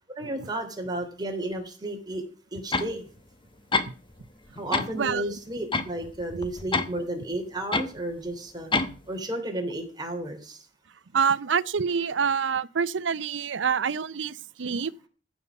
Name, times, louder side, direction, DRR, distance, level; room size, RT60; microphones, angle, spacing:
voice 1, 0.1-2.2 2.5-3.0 4.6-8.7 9.1-10.6, right 1 dB, 25° right, 3.1 m, -33 dB
sound 1, 2.7-2.9 3.7-4.2 4.6-4.9 5.7-6.9 7.7-7.9 8.7-9.0, left 3 dB, 30° left, 1.0 m, -27 dB
voice 2, 4.9-5.3 11.1-14.9, right 6 dB, 90° right, 0.6 m, -26 dB
15.0 x 5.6 x 8.1 m
head